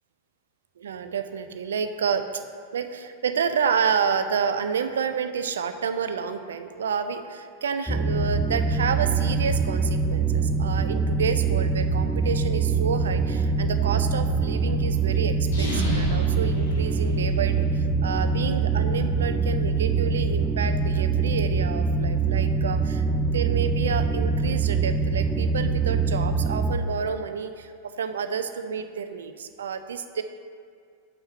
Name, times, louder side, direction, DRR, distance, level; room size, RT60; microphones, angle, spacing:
voice 1, 0.8-2.3 2.7-23.0 23.3-30.2, right 6 dB, 65° right, 9 dB, 0.4 m, -29 dB
sound 1, 7.9-26.7, right 4 dB, ahead, 0.5 m, -24 dB
sound 2, 15.4-17.6, left 1 dB, 65° left, 1.9 m, -32 dB
7.0 x 5.6 x 4.2 m, 2.2 s
figure-of-eight pair, 90°, 0 cm